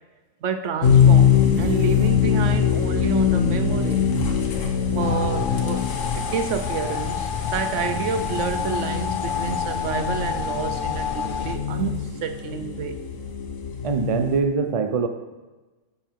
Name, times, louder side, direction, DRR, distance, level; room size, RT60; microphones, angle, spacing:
voice 1, 0.4-4.1 4.9-5.9 6.1-13.0, right 6 dB, 70° right, 9 dB, 1.0 m, -29 dB
sound 1, 0.8-14.4, left 7 dB, 75° left, 1.5 m, -23 dB
sound 2, 5.0-11.6, left 7 dB, 50° left, 0.7 m, -29 dB
voice 2, 13.8-15.1, right 5 dB, 35° right, 7 dB, 0.5 m, -23 dB
15.5 x 5.7 x 4.6 m, 1.2 s
omnidirectional pair, 1.4 m